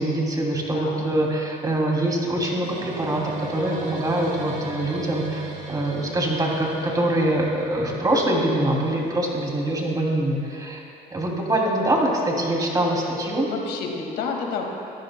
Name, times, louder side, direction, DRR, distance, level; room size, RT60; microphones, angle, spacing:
voice 1, 0.0-5.4 5.7-10.8 11.1-13.5, right 1 dB, 20° right, -1 dB, 2.8 m, -24 dB
voice 2, 0.7-1.0 13.4-14.7, left 5 dB, 85° left, 1 dB, 2.1 m, -30 dB
sound 1, 2.6-10.0, right 3 dB, 50° right, 2.9 m, -37 dB
26.0 x 15.0 x 2.2 m, 2.7 s
cardioid pair, 110°, 17 cm